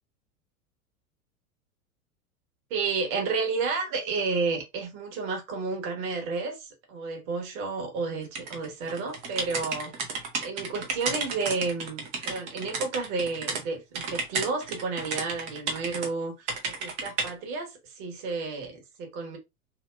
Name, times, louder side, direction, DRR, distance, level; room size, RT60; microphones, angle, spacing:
voice 1, 2.7-19.4, right 4 dB, 40° right, 1.2 m, -31 dB
sound 1, 8.4-13.6 14.0-16.1 16.5-17.3, right 4 dB, 15° right, 0.4 m, -32 dB
2.8 x 2.8 x 2.2 m
figure-of-eight pair, 90°, 44 cm